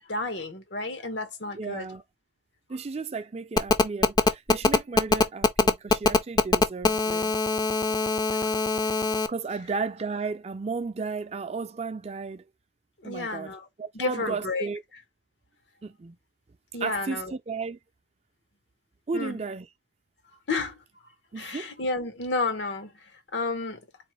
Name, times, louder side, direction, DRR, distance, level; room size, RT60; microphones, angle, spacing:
voice 1, 0.1-1.9 8.4-8.5 13.0-13.6 13.9-14.7 16.7-17.3 19.1-19.4 20.5-20.8 21.4-22.9 23.3-23.8, left 3 dB, 90° left, 1.0 m, -31 dB
voice 2, 1.5-2.0 2.7-7.3 9.3-12.4 13.0-14.8 15.8-16.2 16.8-17.8 19.1-19.7 21.3-21.7, right 4 dB, 35° right, 0.4 m, -34 dB
Telephone, 3.6-9.3, left 3 dB, 25° left, 0.4 m, -22 dB
4.1 x 3.1 x 3.1 m
head